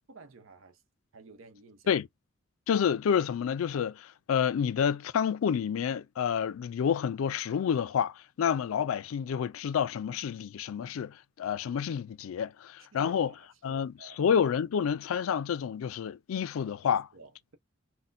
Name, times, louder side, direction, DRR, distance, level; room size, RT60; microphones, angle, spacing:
voice 1, 0.1-0.8 1.1-2.0 12.9-14.3 16.8-17.6, right 3 dB, 80° right, 0.7 m, -52 dB
voice 2, 2.7-13.3 13.6-17.0, left 7 dB, 85° left, 0.3 m, -29 dB
4.1 x 2.1 x 2.5 m
head